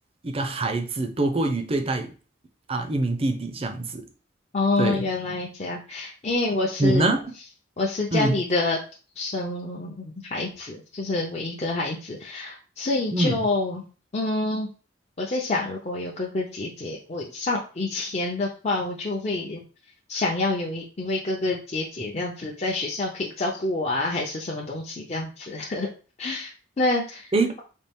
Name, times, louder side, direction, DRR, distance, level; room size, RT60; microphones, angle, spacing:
voice 1, 0.2-2.1 2.7-4.0 4.8-5.0 6.8-7.3 8.1-8.4 13.1-13.4 27.3-27.5, right 2 dB, 30° right, 6 dB, 0.5 m, -24 dB
voice 2, 4.5-7.0 7.8-8.8 9.2-13.8 14.1-14.7 15.2-19.6 20.1-25.9 26.2-27.3, left 2 dB, 35° left, -3 dB, 0.6 m, -27 dB
4.2 x 2.4 x 3.5 m, 0.35 s
head